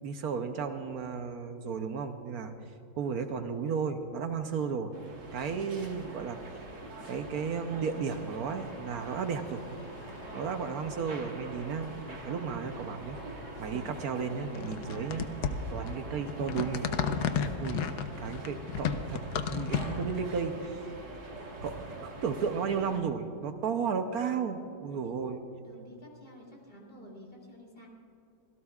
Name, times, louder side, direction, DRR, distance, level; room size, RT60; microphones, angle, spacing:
voice 1, 0.0-2.5 3.0-4.9 5.3-6.4 7.1-9.7 10.3-13.2 13.6-15.3 15.7-16.9 17.6-17.9 18.2-20.8 21.6-25.4, right 6 dB, 70° right, 7 dB, 1.2 m, -34 dB
sound 1, 4.9-23.0, right 2 dB, 85° right, 2.3 m, -45 dB
sound 2, 7.6-17.8, left 2 dB, 60° left, 2.4 m, -56 dB
voice 2, 10.1-10.4 25.0-27.9, left 1 dB, 35° left, -2 dB, 3.2 m, -52 dB
sound 3, 14.5-20.2, left 7 dB, 85° left, 1.3 m, -33 dB
25.0 x 17.0 x 2.4 m, 2.5 s
omnidirectional pair, 1.7 m